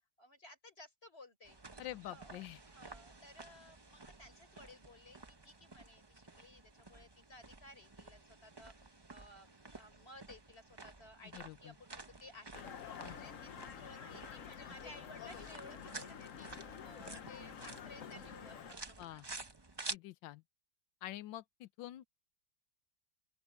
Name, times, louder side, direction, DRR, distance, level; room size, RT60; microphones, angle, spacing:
voice 1, 0.2-1.6 2.1-16.5 16.8-19.3, left 2 dB, 30° left, 4.7 m, -57 dB
sound 1, 1.4-20.0, right 3 dB, 20° right, 0.6 m, -52 dB
voice 2, 1.8-2.6 11.3-11.7 13.0-13.2 19.0-19.3 19.9-20.4 21.0-22.1, left 14 dB, 85° left, 1.4 m, -47 dB
sound 2, 12.5-18.7, left 8 dB, 50° left, 1.2 m, -49 dB
open air
omnidirectional pair, 2.0 m